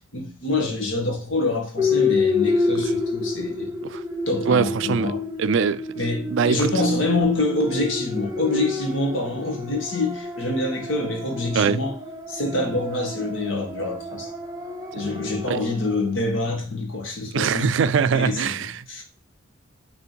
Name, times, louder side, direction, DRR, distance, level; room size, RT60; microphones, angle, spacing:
voice 1, 0.1-3.7 4.3-5.2 6.0-11.9 12.3-14.3 14.9-17.9 18.1-19.0, left 2 dB, 70° left, 1.7 m, -26 dB
sound 1, 1.8-16.0, left 3 dB, 15° right, 0.9 m, -28 dB
voice 2, 4.5-5.1 5.4-5.9 6.3-6.9 8.6-8.7 11.5-11.8 15.0-15.6 17.3-18.8, right 6 dB, 65° right, 0.4 m, -23 dB
6.3 x 3.4 x 4.5 m
head